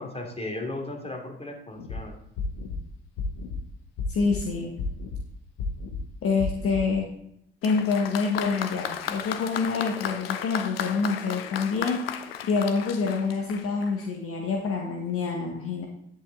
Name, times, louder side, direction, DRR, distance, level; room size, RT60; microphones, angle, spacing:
voice 1, 0.0-2.1, left 2 dB, 20° left, 2 dB, 2.7 m, -35 dB
sound 1, 1.8-2.0 2.4-2.8 3.2-3.6 4.0-4.4 4.8-5.2 5.6-6.0 6.4-6.8, left 4 dB, 70° left, 1.3 m, -31 dB
voice 2, 4.1-4.7 6.2-7.1 7.6-12.0 12.4-15.9, left 4 dB, 50° left, 1 dB, 1.6 m, -27 dB
Applause, 7.6-14.1 15.0-15.1, left 9 dB, 85° left, 0.6 m, -35 dB
10.5 x 7.7 x 3.9 m, 0.72 s
hypercardioid pair, 50°, 29 cm